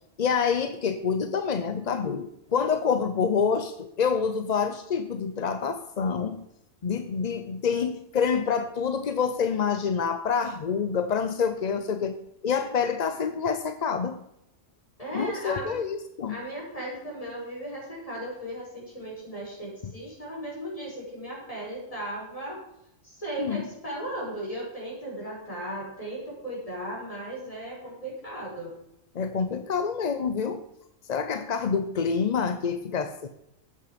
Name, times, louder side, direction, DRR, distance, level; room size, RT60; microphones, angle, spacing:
voice 1, 0.2-6.4 6.8-12.1 12.4-14.2 15.1-16.4 19.8-19.9 23.4-23.6 29.1-30.6 31.1-33.3, left 6 dB, 45° left, 9 dB, 0.6 m, -27 dB
voice 2, 15.0-15.8 16.3-22.6 23.0-28.7, right 1 dB, 25° left, -4 dB, 5.7 m, -36 dB
13.0 x 8.5 x 5.1 m, 0.80 s
omnidirectional pair, 1.3 m